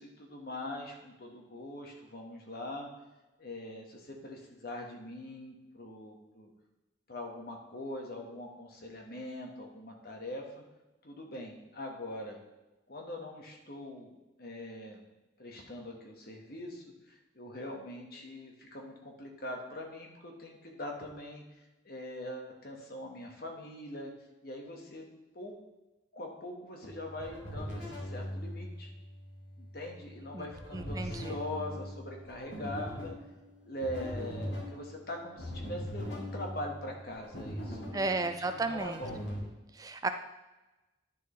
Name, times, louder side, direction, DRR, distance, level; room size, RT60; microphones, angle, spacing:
voice 1, 0.0-2.9 3.4-6.5 7.1-10.6 11.0-12.4 12.9-14.1 14.4-15.0 15.4-16.8 17.3-21.4 21.8-24.1 24.4-25.1 25.3-25.6 26.1-28.9 29.6-33.1 33.6-39.2, left 1 dB, 60° left, 1 dB, 1.6 m, -42 dB
sound 1, 26.8-39.4, equal, 85° left, 2.6 m, -41 dB
voice 2, 30.7-31.4 37.9-39.0 39.7-40.1, right 3 dB, 20° right, 8 dB, 0.4 m, -33 dB
10.0 x 6.8 x 3.3 m, 1.1 s
head